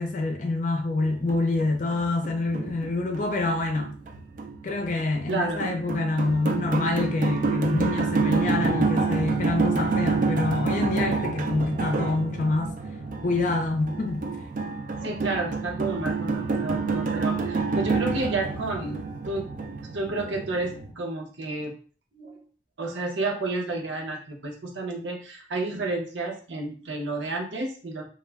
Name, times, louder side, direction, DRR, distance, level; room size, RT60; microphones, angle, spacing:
voice 1, 0.0-4.0 4.6-12.7 13.2-14.3, left 2 dB, 40° left, 0.4 m, -26 dB
sound 1, 1.1-20.9, right 4 dB, 45° right, 0.3 m, -28 dB
voice 2, 5.3-5.6 15.0-19.0 19.3-19.5 19.9-21.7 22.2-22.4 22.8-28.1, right 2 dB, 80° right, 0.8 m, -31 dB
2.3 x 2.0 x 3.3 m
head